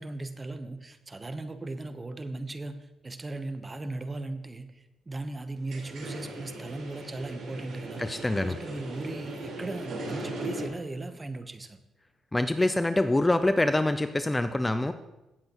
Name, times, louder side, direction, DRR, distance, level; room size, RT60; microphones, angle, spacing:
voice 1, 0.0-8.0 8.4-11.8, right 2 dB, 20° right, 10 dB, 0.9 m, -37 dB
sound 1, 5.6-10.7, right 2 dB, 70° right, 3.9 m, -38 dB
voice 2, 8.0-8.6 12.3-14.9, left 2 dB, 15° left, 10 dB, 0.5 m, -25 dB
17.0 x 7.7 x 3.0 m, 0.98 s
cardioid pair, 90°, 0 cm